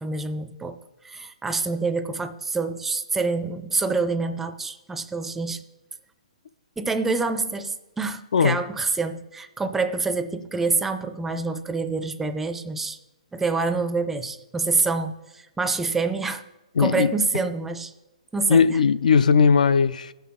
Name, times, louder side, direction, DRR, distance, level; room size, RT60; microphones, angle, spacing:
voice 1, 0.0-0.8 1.0-5.6 6.8-13.0 13.3-16.4 16.8-17.9 18.3-18.8, right 4 dB, 5° right, 0.4 m, -26 dB
voice 2, 16.8-17.1 18.5-20.1, left 6 dB, 85° left, 0.4 m, -18 dB
16.0 x 5.6 x 3.6 m
hypercardioid pair, 155°, 4 cm